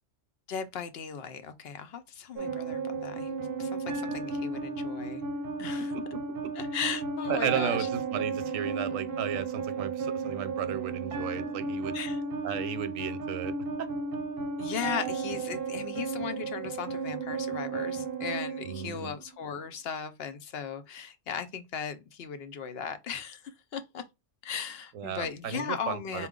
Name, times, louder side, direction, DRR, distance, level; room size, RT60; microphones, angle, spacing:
voice 1, 0.5-5.2 5.6-5.9 6.6-7.9 11.9-12.2 14.6-24.0 24.4-26.3, left 7 dB, 60° left, 0.8 m, -37 dB
sound 1, 2.4-19.4, right 4 dB, 55° right, 0.8 m, -34 dB
voice 2, 7.3-12.0 12.4-13.9 18.6-19.1 24.9-26.3, right 9 dB, 90° right, 1.0 m, -34 dB
4.5 x 2.3 x 3.6 m
omnidirectional pair, 1.3 m